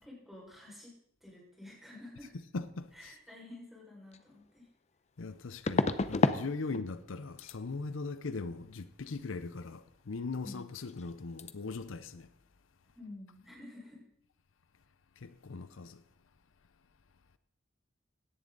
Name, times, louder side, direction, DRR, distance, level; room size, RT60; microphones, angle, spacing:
voice 1, 0.0-2.3 2.9-4.7 10.4-10.7 12.9-14.1, left 2 dB, ahead, 5.1 m, -50 dB
voice 2, 2.5-3.2 5.2-12.3 15.2-16.0, left 3 dB, 90° left, 0.6 m, -40 dB
sound 1, 4.1-4.2 5.7-6.4 6.7-7.1 7.4-7.6 10.5-10.6 10.9-11.1 11.4-11.5, left 3 dB, 35° left, 0.6 m, -30 dB
16.5 x 11.0 x 3.9 m
head